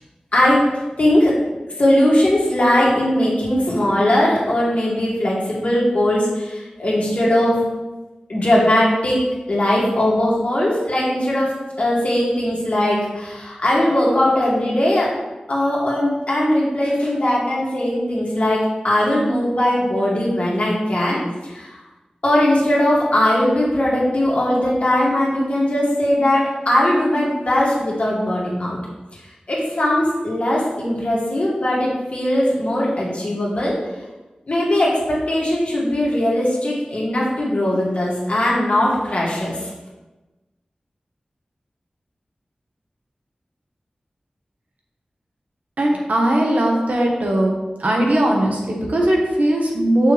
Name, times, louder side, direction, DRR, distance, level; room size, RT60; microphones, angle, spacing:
voice 1, 0.3-0.6 1.0-1.3 1.8-7.6 8.3-9.2 9.5-15.1 15.5-21.7 22.2-28.8 29.5-33.7 34.5-39.7, left 1 dB, 55° left, -5 dB, 2.3 m, -19 dB
voice 2, 45.8-47.5 47.8-50.1, right 1 dB, 70° right, -1 dB, 1.4 m, -19 dB
6.4 x 6.3 x 3.4 m, 1.1 s
wide cardioid pair, 75°, 3 cm